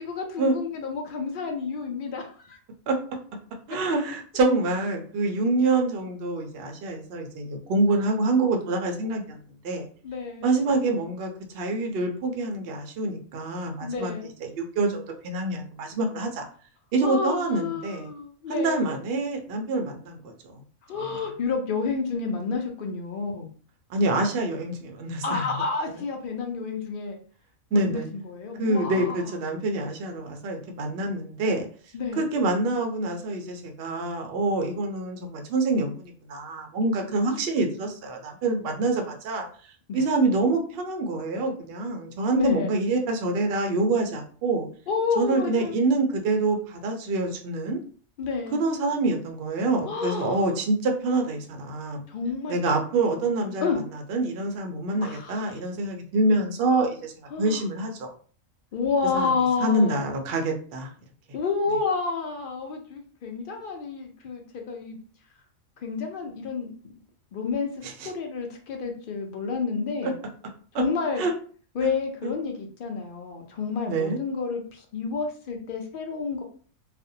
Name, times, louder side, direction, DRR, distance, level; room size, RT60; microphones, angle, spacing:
voice 1, 0.1-2.6 10.0-10.5 13.8-14.3 17.0-18.8 20.9-23.5 25.2-27.2 27.7-29.2 31.9-32.2 39.9-40.0 42.3-42.7 44.9-45.7 48.2-48.6 49.9-50.4 52.1-52.6 53.6-53.8 55.0-55.5 57.3-57.6 58.7-59.9 61.3-65.0 65.8-66.7 67.3-67.7 68.0-70.1 70.8-71.2 71.8-76.4, left 5 dB, 65° left, 3 dB, 0.5 m, -29 dB
voice 2, 3.7-9.4 9.6-9.9 10.4-14.1 14.4-16.5 16.9-18.1 18.5-20.6 21.1-21.2 23.9-25.6 25.9-26.0 27.7-28.1 28.6-31.6 32.2-39.5 39.9-44.7 45.2-47.8 48.5-52.0 52.5-57.1 57.4-58.1 59.1-60.9 67.8-68.1 70.0-70.1 70.7-70.8 71.2-71.3 71.8-71.9 72.2-72.3 73.9-74.2, right 2 dB, 65° right, 3 dB, 0.6 m, -26 dB
2.5 x 2.0 x 2.6 m, 0.43 s
omnidirectional pair, 1.4 m